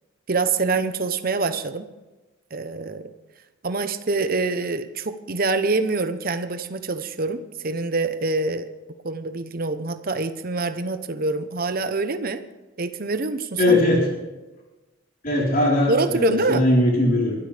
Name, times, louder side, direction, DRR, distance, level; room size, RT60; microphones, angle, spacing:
voice 1, 0.3-1.9 2.5-3.1 3.6-7.4 7.6-8.7 9.0-12.4 12.8-13.8 15.9-16.6, right 3 dB, 45° right, 9 dB, 0.9 m, -25 dB
voice 2, 13.6-14.1 15.2-17.4, left 1 dB, 45° left, -4 dB, 4.2 m, -19 dB
22.5 x 12.5 x 3.4 m, 1.1 s
head